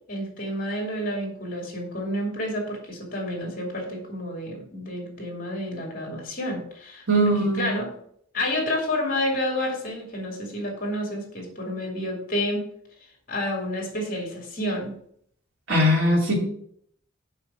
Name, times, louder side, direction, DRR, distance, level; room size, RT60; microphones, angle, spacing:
voice 1, 0.1-7.3 7.5-7.9 8.3-12.7 13.3-14.9, left 1 dB, 45° left, 0 dB, 2.8 m, -29 dB
voice 2, 7.1-7.7 15.7-16.4, equal, 80° right, -3 dB, 3.1 m, -20 dB
7.0 x 5.6 x 5.8 m, 0.65 s
head